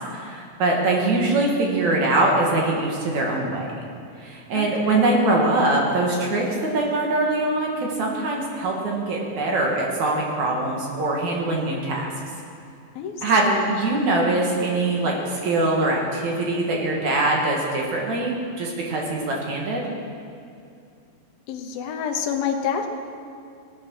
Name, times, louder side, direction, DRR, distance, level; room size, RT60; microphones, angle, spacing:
voice 1, 0.1-3.7 4.2-6.4 6.7-12.1 13.2-19.8, right 2 dB, 55° right, -1 dB, 2.9 m, -23 dB
voice 2, 4.5-5.2 13.0-13.1 13.4-13.9 21.5-22.9, left 7 dB, 80° left, 4 dB, 2.8 m, -28 dB
17.5 x 9.8 x 6.3 m, 2.4 s
omnidirectional pair, 4.2 m